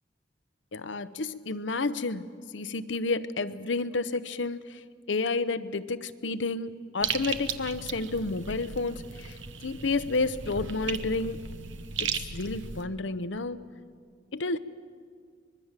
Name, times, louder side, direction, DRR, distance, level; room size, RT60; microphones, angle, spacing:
voice 1, 0.7-2.3 2.5-4.8 5.1-11.4 12.0-13.6 14.3-14.6, left 3 dB, 75° left, 12 dB, 0.9 m, -30 dB
sound 1, 7.0-12.8, right 6 dB, 85° right, 1.1 m, -36 dB
24.5 x 21.5 x 7.4 m, 2.1 s
head